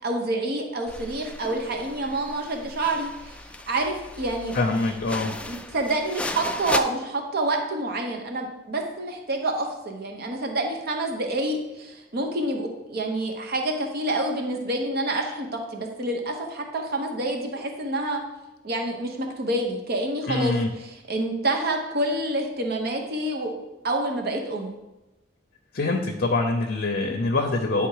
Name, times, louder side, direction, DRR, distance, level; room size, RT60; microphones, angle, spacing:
voice 1, 0.0-3.4 3.7-4.6 5.2-18.2 18.6-23.5 23.8-24.7, right 2 dB, 55° right, 3 dB, 0.9 m, -28 dB
sound 1, 0.9-6.8, left 2 dB, 5° left, 0.3 m, -35 dB
voice 2, 4.5-5.3 20.3-20.7 25.7-27.9, left 2 dB, 50° left, 3 dB, 0.7 m, -24 dB
9.5 x 3.5 x 4.7 m, 1.0 s
head